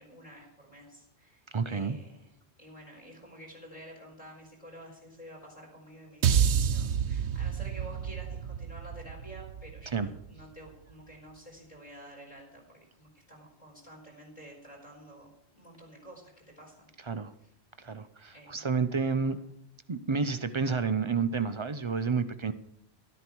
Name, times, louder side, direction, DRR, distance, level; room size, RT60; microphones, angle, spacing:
voice 1, 0.0-16.9 17.4-17.5 18.3-18.9 19.1-19.5, right 1 dB, 35° left, 0 dB, 4.5 m, -50 dB
voice 2, 1.5-2.0 9.9-10.1 17.1-17.3 17.8-19.4 19.9-22.5, right 5 dB, 35° right, 11 dB, 0.5 m, -30 dB
sound 1, 6.2-10.6, right 8 dB, 75° right, 1.0 m, -29 dB
13.0 x 12.0 x 4.6 m, 0.77 s
omnidirectional pair, 1.2 m